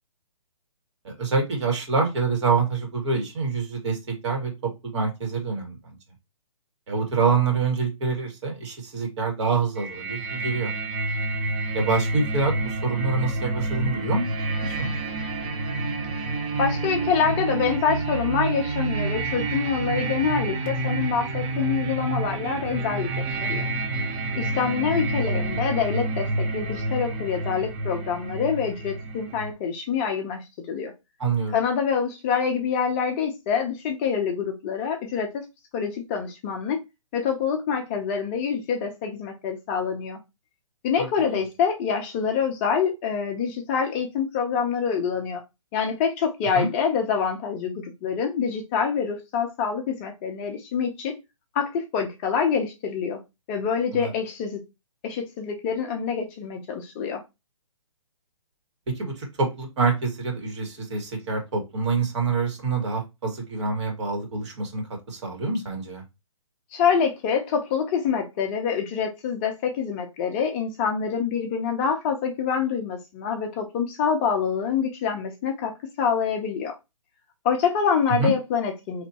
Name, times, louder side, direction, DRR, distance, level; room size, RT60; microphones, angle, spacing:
voice 1, 1.0-4.5 4.9-5.8 6.9-10.7 11.7-14.9 31.2-31.6 41.0-41.1 41.3-41.4 46.6-46.7 53.9-54.1 58.9-66.0 78.2-78.3, right 4 dB, 55° right, 2.0 m, -26 dB
sound 1, 9.8-29.5, right 2 dB, 20° right, 0.6 m, -28 dB
voice 2, 16.6-23.6 24.3-26.3 26.5-30.9 31.5-35.3 35.7-36.8 37.1-40.2 40.8-45.4 45.7-51.1 51.5-53.2 53.5-54.6 55.0-57.2 66.7-75.7 76.0-76.7 77.4-79.1, left 6 dB, 20° left, 0.6 m, -26 dB
4.2 x 3.1 x 2.8 m
hypercardioid pair, 150°, 18 cm